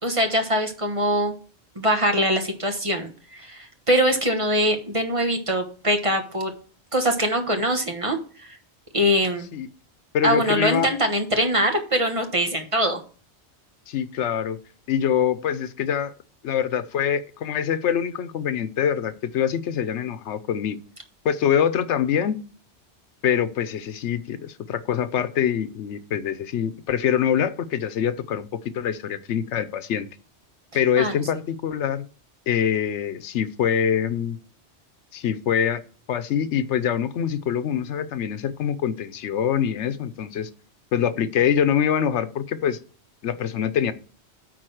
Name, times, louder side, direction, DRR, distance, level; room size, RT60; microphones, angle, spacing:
voice 1, 0.0-1.3 1.7-6.5 6.9-8.6 8.9-9.5 10.2-13.0 31.0-31.2, equal, 30° right, 4 dB, 1.3 m, -23 dB
voice 2, 10.1-10.9 13.9-14.6 14.9-16.1 16.4-20.8 21.2-22.4 23.2-28.5 28.7-30.1 30.7-32.0 32.5-34.4 35.1-35.8 36.1-40.5 40.9-42.8 43.2-43.9, left 8 dB, 90° left, 13 dB, 1.0 m, -24 dB
8.9 x 4.2 x 6.3 m, 0.40 s
omnidirectional pair, 1.1 m